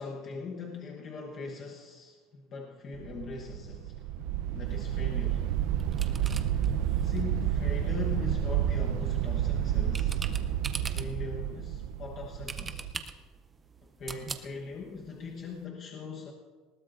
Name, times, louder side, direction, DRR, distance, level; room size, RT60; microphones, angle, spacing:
voice 1, 0.0-3.9 4.5-5.4 7.0-10.3 10.9-12.8 13.8-16.3, left 4 dB, 30° left, 0 dB, 1.1 m, -41 dB
sound 1, 2.9-12.9, right 10 dB, 60° right, 0.6 m, -30 dB
sound 2, 4.6-15.7, right 5 dB, 15° right, 0.6 m, -45 dB
20.0 x 18.5 x 2.6 m, 1.4 s
cardioid pair, 180°, 0 cm